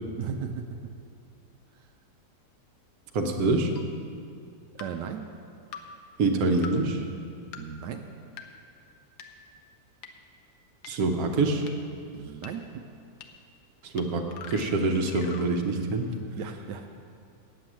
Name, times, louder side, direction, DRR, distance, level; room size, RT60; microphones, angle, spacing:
voice 1, 0.2-0.6 4.7-5.2 7.6-8.1 12.1-12.7 16.4-17.1, right 7 dB, 80° right, 5 dB, 1.2 m, -36 dB
voice 2, 3.1-3.7 6.2-7.0 10.9-11.7 13.8-16.1, right 3 dB, 60° right, 3 dB, 1.3 m, -25 dB
sound 1, 3.8-3.9 4.8-4.9 5.7-5.8 6.6-6.7 7.5-7.6 8.4-8.5 9.2-9.3 10.0-10.1 10.8-10.9 11.7-11.8 12.4-12.5 13.2-13.3 14.0-14.1 14.3-15.5, left 7 dB, 70° left, 1.3 m, -42 dB
9.4 x 7.9 x 7.4 m, 2.5 s
omnidirectional pair, 1.9 m